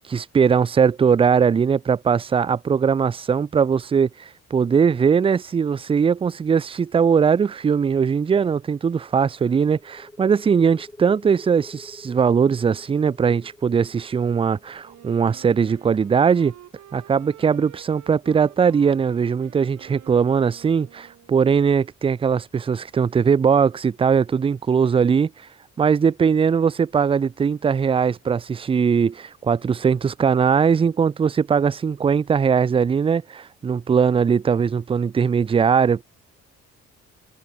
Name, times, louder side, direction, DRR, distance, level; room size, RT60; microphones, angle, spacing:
voice 1, 0.0-16.5 16.9-25.3 25.8-36.0, right 6 dB, 20° right, 0.3 m, -20 dB
sound 1, 9.8-17.1, left 1 dB, 10° left, 3.8 m, -47 dB
Wind instrument woodwind instrument, 14.8-21.5, right 12 dB, 65° right, 1.1 m, -48 dB
cardioid pair, 90°, 30 cm